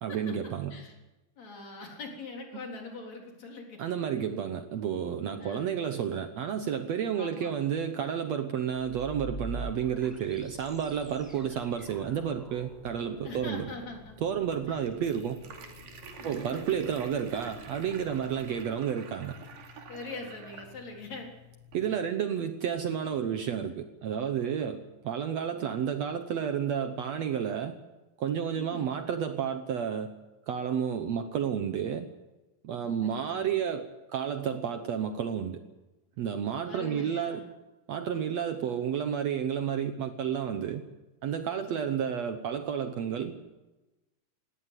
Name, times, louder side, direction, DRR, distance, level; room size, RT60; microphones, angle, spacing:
voice 1, 0.0-0.8 3.8-13.7 14.2-15.4 16.2-19.4 21.7-27.8 28.2-30.1 30.5-32.1 32.6-35.6 36.2-37.4 37.9-40.8 41.2-43.3, right 8 dB, 65° right, 8 dB, 1.9 m, -31 dB
voice 2, 1.4-3.8 5.4-5.7 7.1-7.5 13.2-14.2 14.7-14.8 16.1-17.0 18.1-18.2 19.9-21.3 28.6-29.0 32.8-33.6 36.6-37.5 41.7-42.0, left 3 dB, 55° left, 1 dB, 4.9 m, -43 dB
sound 1, 8.7-18.7, right 2 dB, ahead, 4.6 m, -47 dB
sound 2, 12.4-22.0, right 3 dB, 85° right, 4.3 m, -48 dB
19.0 x 17.0 x 9.7 m, 1.1 s
omnidirectional pair, 3.9 m